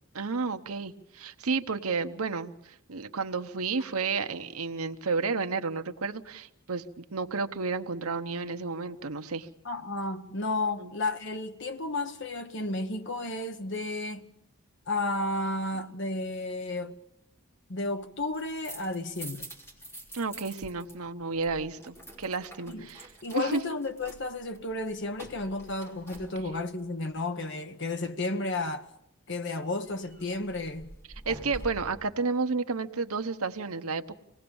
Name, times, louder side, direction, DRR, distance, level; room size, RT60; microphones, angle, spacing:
voice 1, 0.1-9.5 10.8-10.9 20.1-23.6 31.3-34.2, right 4 dB, 85° right, 1.0 m, -32 dB
voice 2, 9.6-14.3 14.9-16.9 17.7-19.5 22.7-22.9 23.2-28.9 29.3-30.9, left 2 dB, 55° left, 1.2 m, -32 dB
sound 1, 18.3-21.0 21.2-26.8 29.9-32.1, right 1 dB, 10° left, 3.3 m, -46 dB
25.5 x 19.0 x 7.1 m
head